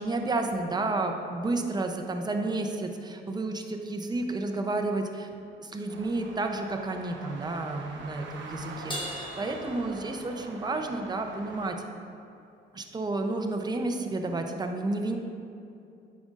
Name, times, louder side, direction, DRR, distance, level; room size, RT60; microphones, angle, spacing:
voice 1, 0.0-5.3 5.6-11.8 12.7-15.2, right 2 dB, 20° right, 4 dB, 0.6 m, -31 dB
sound 1, 5.9-11.7, right 4 dB, 70° right, 0.7 m, -45 dB
Crash cymbal, 8.9-10.6, equal, 25° left, 1.2 m, -39 dB
9.1 x 5.2 x 2.5 m, 2.6 s
cardioid pair, 90°, 20 cm